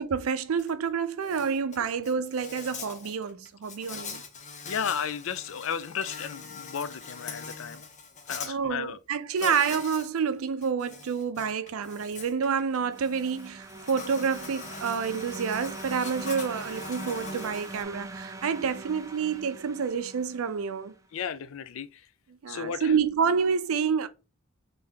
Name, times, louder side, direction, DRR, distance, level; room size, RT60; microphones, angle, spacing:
voice 1, 0.0-4.2 8.4-21.0 22.4-24.1, right 6 dB, 80° right, 0.4 m, -28 dB
Insect, 0.6-0.7 1.0-8.5 9.4-10.1 10.4-17.8, left 5 dB, 35° left, 0.7 m, -43 dB
voice 2, 4.7-7.8 8.3-9.0 9.4-9.5 21.1-22.1 22.5-22.9, left 7 dB, 70° left, 0.4 m, -34 dB
sound 1, 12.3-20.9, right 2 dB, 15° right, 0.3 m, -42 dB
3.4 x 2.7 x 3.5 m
head